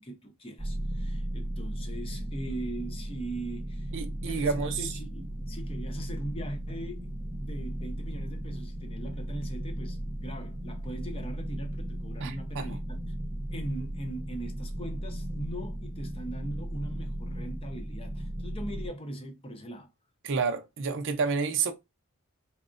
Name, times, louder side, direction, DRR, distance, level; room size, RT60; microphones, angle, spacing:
voice 1, 0.0-3.9 4.2-7.1 7.4-13.0 13.5-19.9, right 1 dB, 25° left, 0.6 m, -40 dB
sound 1, 0.6-18.9, right 1 dB, 20° right, 0.7 m, -36 dB
voice 2, 3.9-4.9 12.2-12.8 20.2-21.7, right 5 dB, 55° right, 0.5 m, -30 dB
4.3 x 2.0 x 2.5 m
head